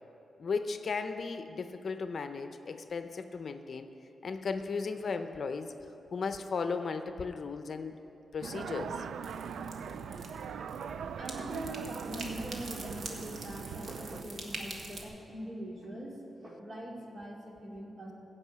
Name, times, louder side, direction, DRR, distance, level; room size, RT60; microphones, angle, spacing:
voice 1, 0.4-3.9 4.2-8.0 8.3-9.1, left 4 dB, 55° left, 8 dB, 0.6 m, -36 dB
sound 1, 8.4-14.2, right 7 dB, 85° right, 0.3 m, -41 dB
sound 2, 8.6-15.0, right 2 dB, 60° right, 1.5 m, -45 dB
voice 2, 11.2-18.1, right 1 dB, 40° right, -2 dB, 2.4 m, -42 dB
15.5 x 5.5 x 8.3 m, 2.9 s
cardioid pair, 90°, 0 cm